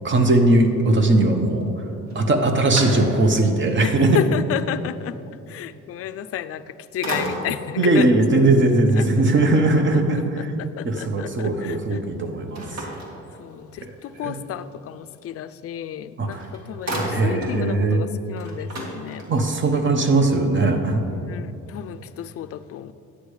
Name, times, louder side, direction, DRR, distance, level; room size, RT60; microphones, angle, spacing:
voice 1, 0.0-1.7 2.1-4.2 7.8-10.5 10.8-12.6 14.2-14.3 16.2-16.4 17.1-18.0 19.3-21.0, right 2 dB, 40° right, 5 dB, 1.0 m, -19 dB
sound 1, 2.1-3.5 4.0-4.1 6.4-6.7 7.0-7.8 12.5-13.8 15.9-16.0 16.3-17.6 18.0-18.1 18.3-19.6, right 1 dB, 60° right, 2.0 m, -32 dB
voice 2, 3.8-5.2 5.5-8.4 8.9-9.1 9.5-9.6 10.1-12.0 12.7-13.0 13.4-19.3 19.7-20.0 21.1-22.9, left 10 dB, 50° left, 12 dB, 0.4 m, -32 dB
9.9 x 9.7 x 3.2 m, 2.9 s
cardioid pair, 90°, 30 cm